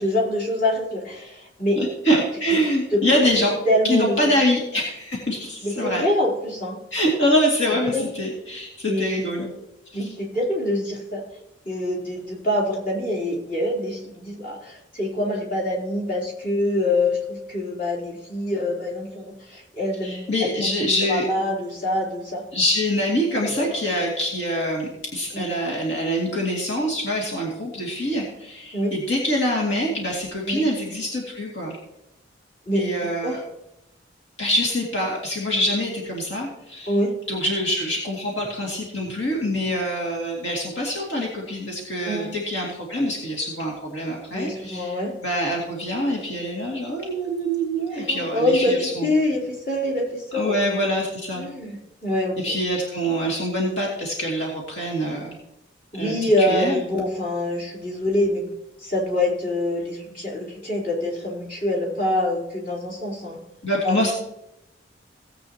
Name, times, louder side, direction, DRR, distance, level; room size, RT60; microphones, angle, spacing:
voice 1, 0.0-1.8 2.5-2.6 2.9-3.0 3.7-4.2 5.6-6.8 7.9-8.1 8.9-9.3 9.9-11.2 11.7-20.7 21.1-22.4 23.4-23.8 25.3-25.5 28.7-29.0 30.5-30.7 32.7-33.4 36.9-37.1 42.0-42.3 44.3-45.1 47.9-50.6 51.3-52.6 55.9-58.5 58.8-63.4 63.8-64.1, left 1 dB, 45° left, -4 dB, 3.8 m, -25 dB
voice 2, 1.8-3.6 3.8-6.0 6.9-9.5 9.9-10.1 20.0-21.3 22.5-31.8 32.7-33.4 34.4-36.9 37.3-49.1 50.3-51.4 52.4-55.4 55.9-56.8 63.6-64.1, equal, 70° left, -3 dB, 2.6 m, -25 dB
18.0 x 8.4 x 3.0 m, 0.84 s
head